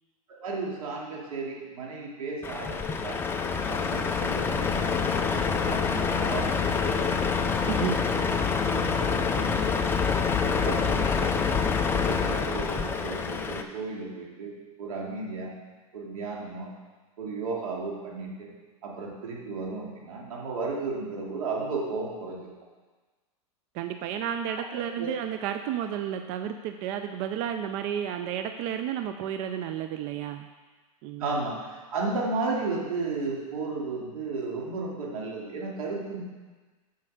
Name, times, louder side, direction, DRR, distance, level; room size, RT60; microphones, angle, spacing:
voice 1, 0.3-3.2 3.6-7.1 7.7-8.3 8.9-10.0 10.4-11.3 11.9-15.5 15.9-16.7 17.2-18.5 18.8-22.5 24.7-25.1 31.2-36.2, right 3 dB, 75° right, -2 dB, 2.5 m, -34 dB
Truck, 2.4-13.6, left 5 dB, 10° left, 0.5 m, -26 dB
voice 2, 7.6-7.9 8.7-9.2 23.7-30.5 31.0-31.2, right 9 dB, 40° right, 7 dB, 0.5 m, -32 dB
7.6 x 5.7 x 6.4 m, 1.3 s
hypercardioid pair, 135°, 18 cm